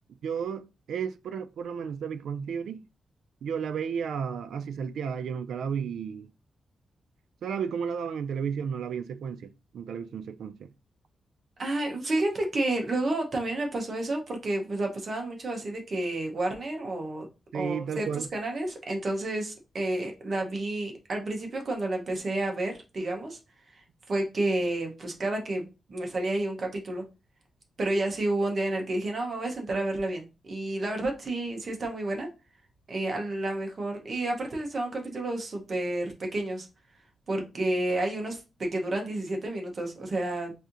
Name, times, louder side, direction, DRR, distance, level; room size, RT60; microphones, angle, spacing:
voice 1, 0.2-2.8 3.4-6.3 7.4-10.7 17.5-18.3, right 7 dB, 85° right, 0.3 m, -33 dB
voice 2, 11.6-17.3 17.5-23.4 24.1-27.0 27.8-32.3 32.9-36.7 37.3-40.5, right 2 dB, 35° right, 0.8 m, -30 dB
4.2 x 2.6 x 2.5 m
wide cardioid pair, 180°, 0 cm